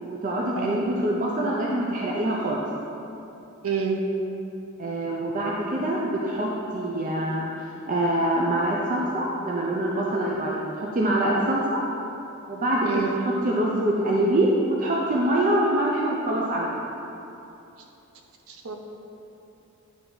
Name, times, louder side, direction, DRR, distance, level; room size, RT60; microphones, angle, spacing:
voice 1, 0.0-2.7 4.8-11.8 12.5-16.7, right 1 dB, 40° right, -3 dB, 0.5 m, -25 dB
voice 2, 3.6-4.0 12.9-13.2 18.5-18.8, right 6 dB, 80° right, 2 dB, 0.7 m, -28 dB
9.3 x 3.4 x 3.9 m, 2.9 s
head